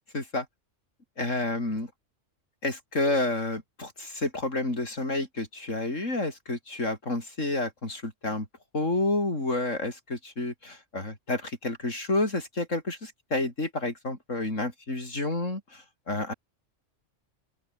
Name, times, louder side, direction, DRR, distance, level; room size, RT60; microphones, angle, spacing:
voice 1, 0.1-0.5 1.2-1.9 2.6-8.5 8.7-16.3, left 2 dB, 85° left, 5.9 m, -30 dB
open air
omnidirectional pair, 1.3 m